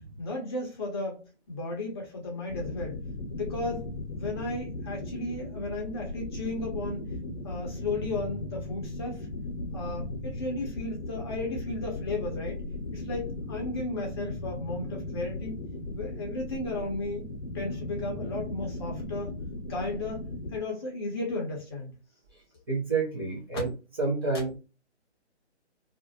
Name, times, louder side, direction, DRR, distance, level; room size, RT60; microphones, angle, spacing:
voice 1, 0.2-3.0 3.3-3.9 4.1-7.0 7.4-9.3 9.7-12.6 12.9-15.6 15.9-17.3 17.5-19.3 19.7-21.9, left 2 dB, 25° left, 0.7 m, -34 dB
sound 1, 2.5-20.6, left 2 dB, 55° left, 0.8 m, -37 dB
voice 2, 22.7-23.7 24.0-24.5, right 4 dB, 20° right, 0.5 m, -28 dB
2.5 x 2.1 x 2.6 m
figure-of-eight pair, 140°, 34 cm